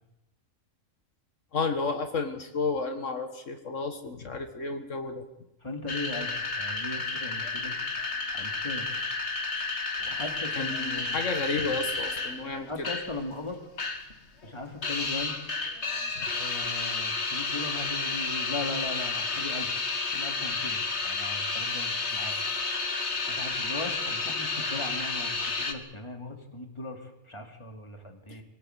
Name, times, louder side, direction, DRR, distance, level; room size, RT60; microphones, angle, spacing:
voice 1, 1.5-5.2 10.5-12.7 16.2-16.3, left 4 dB, 80° left, 6 dB, 2.1 m, -32 dB
voice 2, 5.6-7.8 8.3-8.9 10.0-11.2 12.6-13.6 14.4-15.4 16.3-22.4 23.3-28.4, left 2 dB, 25° left, 3 dB, 3.0 m, -38 dB
sound 1, 5.9-13.2 13.5-14.1 14.4-25.7, left 3 dB, 60° left, 2.2 m, -31 dB
24.0 x 17.0 x 8.2 m, 0.88 s
omnidirectional pair, 1.3 m